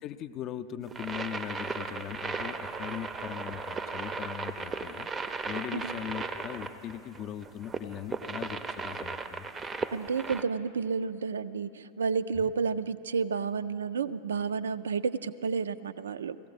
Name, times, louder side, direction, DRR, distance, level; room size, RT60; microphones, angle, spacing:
voice 1, 0.0-9.5 12.3-12.5, left 10 dB, 35° left, 10 dB, 0.5 m, -40 dB
sound 1, 0.9-10.4, right 4 dB, 20° right, 0.5 m, -36 dB
voice 2, 9.9-16.4, right 5 dB, 65° right, 14 dB, 0.3 m, -31 dB
17.0 x 15.0 x 4.0 m, 2.6 s
figure-of-eight pair, 90°, 0 cm